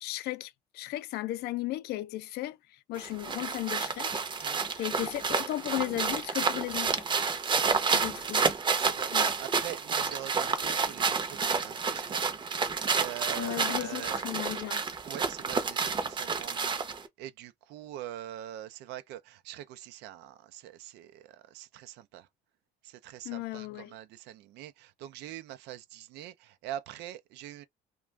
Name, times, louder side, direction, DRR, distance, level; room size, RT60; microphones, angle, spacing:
voice 1, 0.0-2.6 2.9-7.1 7.9-8.5 9.1-9.3 13.4-14.8 23.2-24.0, left 16 dB, 75° left, 0.4 m, -35 dB
sound 1, 3.0-17.1, right 5 dB, 30° right, 0.6 m, -30 dB
voice 2, 7.4-7.8 8.7-12.2 12.9-14.2 15.0-22.3 22.8-27.7, right 12 dB, 85° right, 0.5 m, -43 dB
2.4 x 2.2 x 3.2 m
cardioid pair, 110°, 17 cm